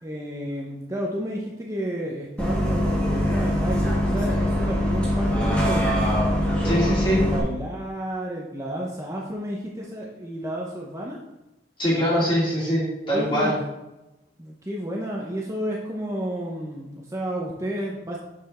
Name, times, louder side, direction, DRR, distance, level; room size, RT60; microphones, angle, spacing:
voice 1, 0.0-6.1 6.9-11.2 13.0-13.5 14.4-18.2, equal, 15° right, -2 dB, 0.8 m, -31 dB
Bus, 2.4-7.4, equal, 5° left, 1.9 m, -23 dB
voice 2, 6.6-7.2 11.8-13.5, equal, 30° left, -5 dB, 2.6 m, -23 dB
6.7 x 6.0 x 4.4 m, 0.98 s
head